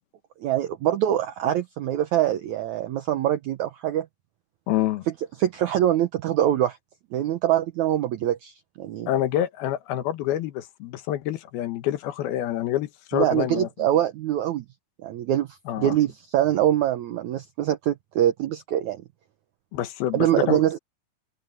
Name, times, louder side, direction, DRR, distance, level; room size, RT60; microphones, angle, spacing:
voice 1, 0.4-4.1 5.4-6.8 7.1-9.1 13.1-14.6 15.0-15.5 15.8-19.0 20.1-20.8, right 12 dB, 75° right, 1.7 m, -24 dB
voice 2, 4.7-5.1 9.1-13.7 15.7-16.0 19.7-20.6, left 12 dB, 80° left, 3.0 m, -27 dB
open air
omnidirectional pair, 4.4 m